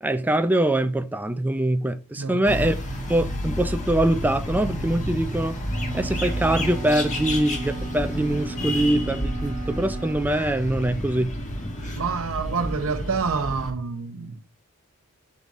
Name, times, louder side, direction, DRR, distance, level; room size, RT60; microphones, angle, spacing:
voice 1, 0.0-2.7 3.1-5.6 5.9-11.4, right 1 dB, 10° right, 0.4 m, -23 dB
voice 2, 2.2-2.8 11.9-14.4, right 5 dB, 65° right, 0.8 m, -28 dB
sound 1, 2.4-13.7, equal, 35° left, 1.3 m, -30 dB
sound 2, 5.7-10.3, right 3 dB, 30° right, 1.0 m, -37 dB
5.7 x 5.2 x 3.6 m
head